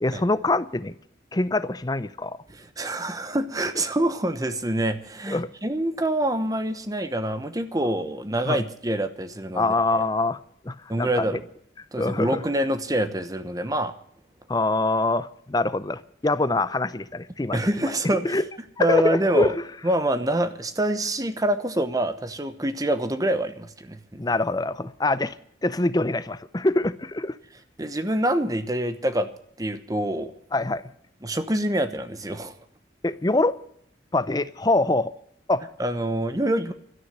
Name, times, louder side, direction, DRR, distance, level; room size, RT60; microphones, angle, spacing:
voice 1, 0.0-0.9 1.3-2.4 5.3-5.5 8.5-8.6 9.6-10.4 10.6-11.4 12.0-12.4 14.5-17.6 18.2-18.4 18.8-19.6 24.2-25.4 25.6-27.4 30.5-30.8 33.0-33.6 34.1-35.1 35.5-35.6, left 2 dB, 20° left, 0.6 m, -24 dB
voice 2, 2.5-9.6 10.9-11.4 11.9-13.9 17.5-18.4 18.8-19.6 19.8-24.2 27.8-29.3 29.6-30.3 31.2-32.5 35.8-36.7, right 1 dB, 20° right, 1.0 m, -26 dB
12.5 x 9.9 x 9.3 m
head